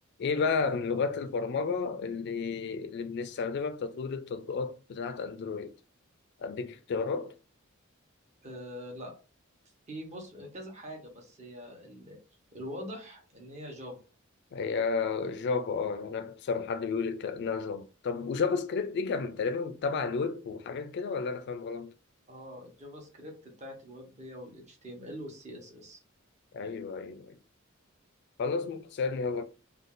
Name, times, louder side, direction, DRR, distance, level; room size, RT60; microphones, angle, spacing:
voice 1, 0.2-5.7 6.4-7.3 14.5-21.9 26.5-27.4 28.4-29.4, left 5 dB, 55° left, 0.3 m, -32 dB
voice 2, 8.4-9.1 9.9-12.2 12.5-14.0 22.3-26.0, equal, 35° right, 0.9 m, -44 dB
2.5 x 2.3 x 3.6 m
head